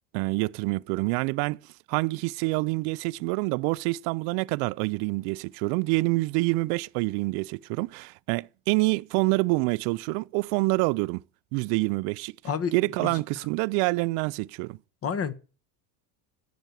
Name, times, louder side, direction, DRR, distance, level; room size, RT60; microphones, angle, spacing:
voice 1, 0.1-1.6 1.9-11.2 11.5-12.4 12.7-14.8, right 24 dB, 70° right, 0.5 m, -27 dB
voice 2, 15.0-15.3, left 7 dB, 35° left, 1.3 m, -29 dB
12.0 x 6.2 x 6.8 m
supercardioid pair, 120°, 43 cm